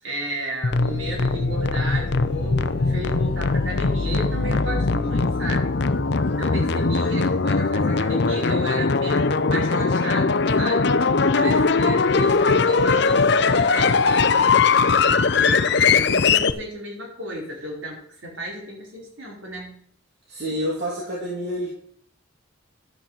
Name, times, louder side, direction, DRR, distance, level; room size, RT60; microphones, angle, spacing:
voice 1, 0.0-5.7 6.4-10.9 11.3-19.8, right 1 dB, 70° right, -2 dB, 4.8 m, -34 dB
sound 1, 0.6-16.5, left 4 dB, 55° left, 0.6 m, -20 dB
voice 2, 20.3-21.7, equal, 50° right, -3 dB, 2.7 m, -28 dB
11.5 x 6.6 x 7.5 m, 0.62 s
head